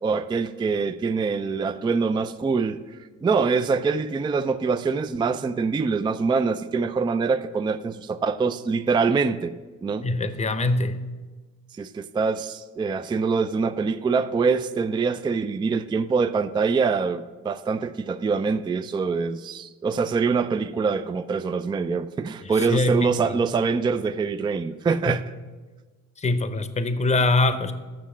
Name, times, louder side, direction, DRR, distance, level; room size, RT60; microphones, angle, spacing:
voice 1, 0.0-2.8 3.2-9.5 9.8-10.1 11.8-25.2, right 5 dB, 15° right, 0.3 m, -24 dB
voice 2, 10.0-11.0 22.4-23.1 25.1-25.2 26.2-27.7, left 2 dB, 20° left, 0.7 m, -23 dB
7.7 x 6.2 x 7.4 m
cardioid pair, 90°, 30 cm